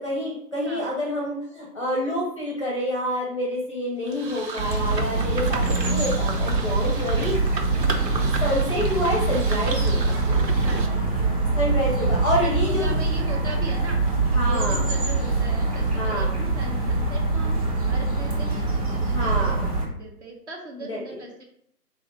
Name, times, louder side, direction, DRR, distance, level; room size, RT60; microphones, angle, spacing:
voice 1, 0.0-7.3 8.4-10.2 10.5-10.6 11.6-12.9 14.3-14.8 15.9-16.3 19.0-19.7 20.9-21.2, equal, 20° left, -3 dB, 0.6 m, -28 dB
sound 1, 4.1-10.9, right 4 dB, 80° right, 0.9 m, -34 dB
sound 2, 4.6-19.8, right 3 dB, 20° right, 0.7 m, -24 dB
voice 2, 6.6-7.9 8.6-8.9 10.6-18.7 19.2-19.6 19.9-21.4, right 2 dB, 45° right, 1 dB, 1.0 m, -39 dB
4.1 x 2.8 x 4.1 m, 0.70 s
figure-of-eight pair, 145°, 49 cm